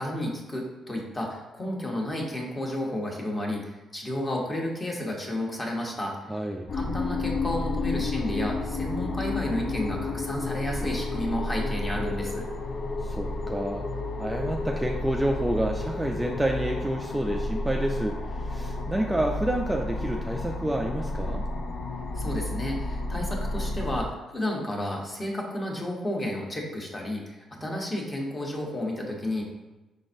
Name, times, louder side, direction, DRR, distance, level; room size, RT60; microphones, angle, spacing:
voice 1, 0.0-6.1 6.7-12.5 22.1-29.4, left 1 dB, 25° left, -1 dB, 1.1 m, -32 dB
voice 2, 6.3-6.7 13.0-13.9 14.2-21.5, right 1 dB, 10° right, 1 dB, 0.4 m, -29 dB
sound 1, 6.7-24.0, left 2 dB, 60° left, 0.5 m, -31 dB
5.2 x 3.8 x 2.6 m, 1.1 s
cardioid pair, 90°, 0 cm